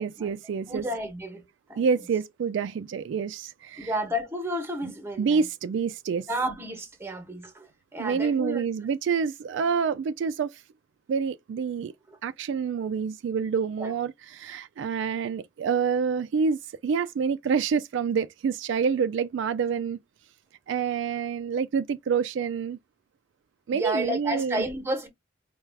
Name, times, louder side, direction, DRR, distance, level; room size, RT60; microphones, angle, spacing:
voice 1, 0.0-0.9 1.8-4.0 4.8-6.3 8.0-10.6 11.1-11.9 12.2-20.0 20.7-22.8 23.7-24.7, right 6 dB, 70° right, 0.3 m, -27 dB
voice 2, 0.7-1.4 1.7-1.8 3.8-5.4 6.3-8.6 12.1-12.2 13.8-14.0 23.7-25.1, equal, 15° right, 1.0 m, -31 dB
4.5 x 2.3 x 3.3 m
head